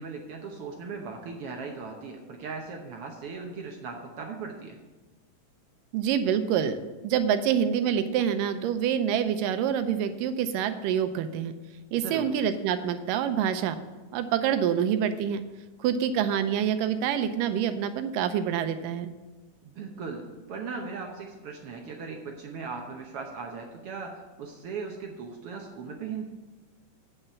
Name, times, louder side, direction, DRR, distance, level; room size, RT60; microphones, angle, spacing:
voice 1, 0.0-4.8 11.9-12.3 19.6-26.2, right 4 dB, 70° right, 2 dB, 1.4 m, -38 dB
voice 2, 5.9-6.8 7.0-11.5 11.9-13.8 14.1-15.4 15.8-19.1, right 8 dB, 85° right, 10 dB, 2.3 m, -26 dB
9.1 x 5.6 x 7.0 m, 1.2 s
omnidirectional pair, 3.7 m